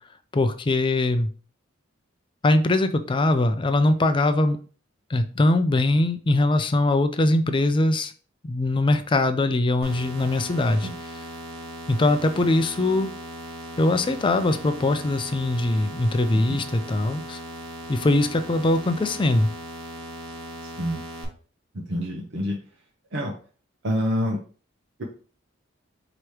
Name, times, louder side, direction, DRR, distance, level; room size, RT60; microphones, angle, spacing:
voice 1, 0.3-1.3 2.4-4.6 5.1-8.1 8.4-10.9 11.9-13.1 13.8-17.4 17.9-19.5, left 2 dB, 25° left, 9 dB, 0.4 m, -22 dB
sound 1, 9.8-21.2, right 1 dB, 75° right, 1.3 m, -38 dB
voice 2, 21.9-22.6 23.1-23.3 23.8-24.4, equal, 60° right, -1 dB, 0.7 m, -26 dB
4.9 x 2.9 x 3.1 m, 0.40 s
head